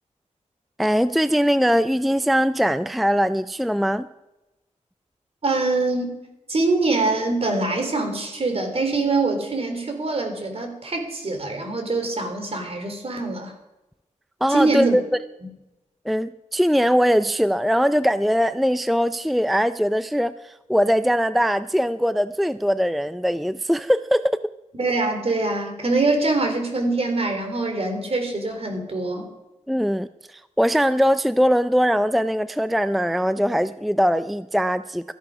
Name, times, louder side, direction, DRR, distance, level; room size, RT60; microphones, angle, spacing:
voice 1, 0.8-4.1 14.4-15.0 16.1-24.4 29.7-35.1, equal, ahead, 13 dB, 0.4 m, -21 dB
voice 2, 5.4-6.1 6.5-13.5 14.5-14.9 24.7-29.3, right 3 dB, 50° right, 5 dB, 3.6 m, -24 dB
14.0 x 11.0 x 5.0 m, 0.97 s
cardioid pair, 50°, 13 cm